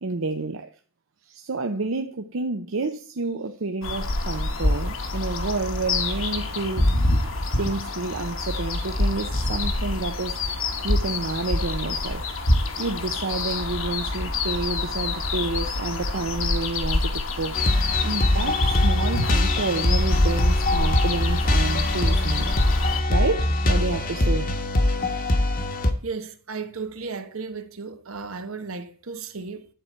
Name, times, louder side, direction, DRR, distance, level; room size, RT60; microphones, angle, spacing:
voice 1, 0.0-0.7 1.3-7.1 7.6-12.3 12.8-17.6 18.0-22.6 22.9-24.5, right 3 dB, 70° right, 0.7 m, -29 dB
sound 1, 3.8-23.0, left 2 dB, 70° left, 1.5 m, -26 dB
sound 2, 17.5-25.9, left 1 dB, 45° left, 1.1 m, -22 dB
voice 2, 26.0-29.7, right 4 dB, 90° right, 1.2 m, -34 dB
11.5 x 4.5 x 8.2 m
head